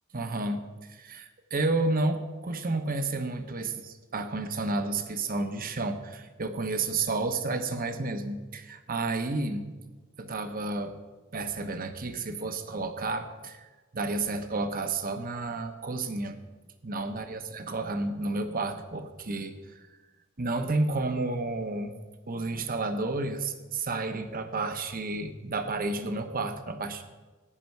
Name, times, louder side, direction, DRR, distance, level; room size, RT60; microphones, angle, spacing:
voice 1, 0.1-9.8 10.2-11.0 11.3-16.4 16.8-19.9 20.4-21.9 22.3-27.0, right 3 dB, 45° right, 8 dB, 1.1 m, -31 dB
16.0 x 10.0 x 4.7 m, 1.3 s
head